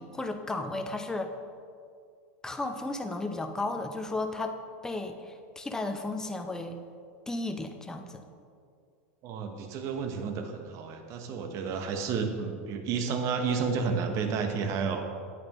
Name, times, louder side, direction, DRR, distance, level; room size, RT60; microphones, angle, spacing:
voice 1, 0.0-1.3 2.4-4.5 4.8-6.8 7.3-8.2, left 2 dB, 10° left, 6 dB, 0.6 m, -34 dB
voice 2, 9.2-15.0, right 5 dB, 45° right, 5 dB, 1.0 m, -31 dB
9.1 x 8.7 x 3.0 m, 2.3 s
hypercardioid pair, 115°, 7 cm